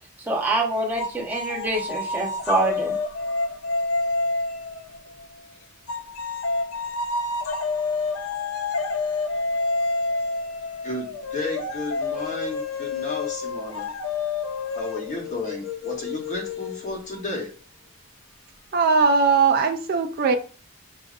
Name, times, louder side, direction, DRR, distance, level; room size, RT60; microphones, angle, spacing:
voice 1, 0.3-3.0, right 2 dB, 10° right, -3 dB, 1.0 m, -25 dB
sound 1, 1.0-5.3 5.9-17.2, left 3 dB, 70° left, 0.5 m, -28 dB
voice 2, 10.8-13.9 14.7-17.5, left 2 dB, 35° left, 0 dB, 1.0 m, -33 dB
voice 3, 18.7-20.4, right 4 dB, 45° right, 5 dB, 0.4 m, -19 dB
6.1 x 2.6 x 2.5 m, 0.38 s
head